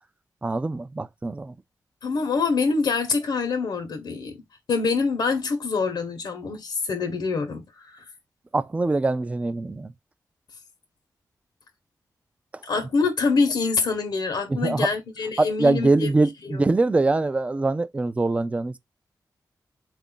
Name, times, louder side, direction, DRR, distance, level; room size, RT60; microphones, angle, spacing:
voice 1, 0.4-1.5 8.5-9.9 14.5-14.9 15.4-18.8, right 2 dB, 20° right, 0.3 m, -23 dB
voice 2, 2.0-8.1 12.6-16.1 16.4-16.6, left 4 dB, 85° left, 0.9 m, -25 dB
3.7 x 2.4 x 3.7 m
wide cardioid pair, 115°, 7 cm